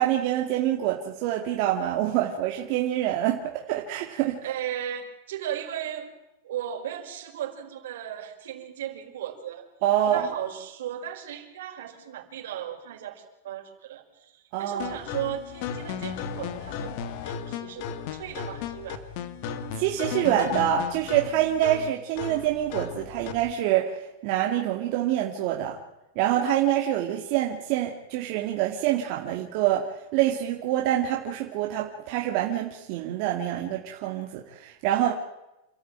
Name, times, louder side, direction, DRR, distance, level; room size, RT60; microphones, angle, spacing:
voice 1, 0.0-4.4 9.8-10.3 14.5-14.9 19.8-25.8 26.2-35.1, right 12 dB, 45° right, 0 dB, 2.4 m, -26 dB
voice 2, 4.4-6.1 6.4-9.7 10.1-16.9 17.2-19.1, right 10 dB, 75° right, 3 dB, 5.4 m, -36 dB
sound 1, 14.8-23.5, left 7 dB, 45° left, 1.8 m, -35 dB
28.5 x 14.0 x 9.0 m, 0.95 s
supercardioid pair, 165°, 0 cm